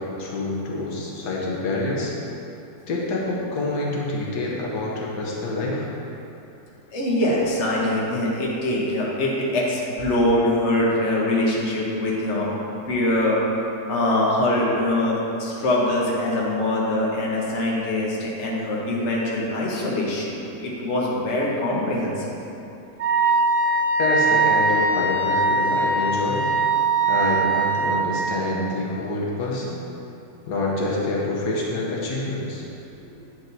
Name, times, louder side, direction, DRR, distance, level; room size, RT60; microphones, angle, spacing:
voice 1, 0.0-2.1 2.9-5.9 24.0-26.5 27.1-29.8 30.5-32.6, left 2 dB, 85° left, -4 dB, 1.6 m, -27 dB
voice 2, 6.9-12.5 12.9-13.4 13.9-22.3 33.0-33.1, left 1 dB, 50° left, -5 dB, 1.3 m, -23 dB
Wind instrument woodwind instrument, 23.0-27.9, right 3 dB, 45° right, 0.9 m, -21 dB
8.7 x 4.6 x 4.0 m, 2.9 s
omnidirectional pair, 1.7 m